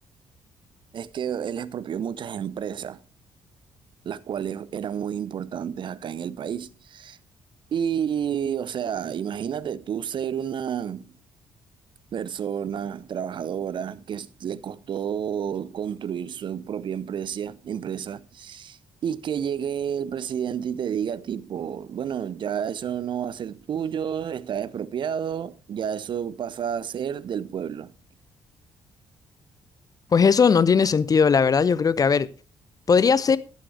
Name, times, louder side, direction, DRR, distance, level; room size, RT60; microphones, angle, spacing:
voice 1, 0.9-3.0 4.0-7.2 7.7-11.1 12.1-27.9, right 8 dB, 45° right, 0.7 m, -30 dB
voice 2, 30.1-32.3 32.9-33.4, left 6 dB, 35° left, 0.6 m, -18 dB
14.0 x 11.0 x 3.3 m
figure-of-eight pair, 40°, 11 cm